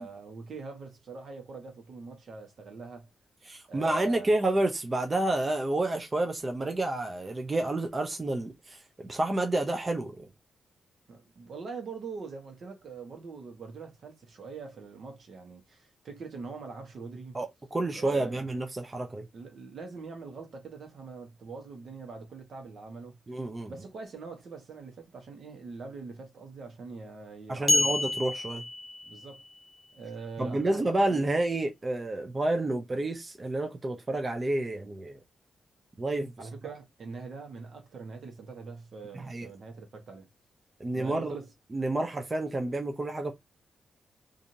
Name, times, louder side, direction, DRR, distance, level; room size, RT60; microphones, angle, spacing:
voice 1, 0.0-3.1 3.7-4.3 11.1-17.4 17.9-18.5 19.3-23.2 23.7-28.1 29.1-29.4 29.9-31.2 36.4-40.3 40.9-41.5, right 4 dB, 65° right, 1.0 m, -43 dB
voice 2, 3.4-10.3 17.3-19.3 23.3-23.7 27.5-28.6 30.4-35.2 36.0-36.3 39.1-39.5 40.8-41.4 41.7-43.3, right 2 dB, 30° right, 0.5 m, -29 dB
sound 1, 27.7-29.5, left 3 dB, 15° left, 0.5 m, -28 dB
2.8 x 2.5 x 2.6 m
cardioid pair, 60°, 0 cm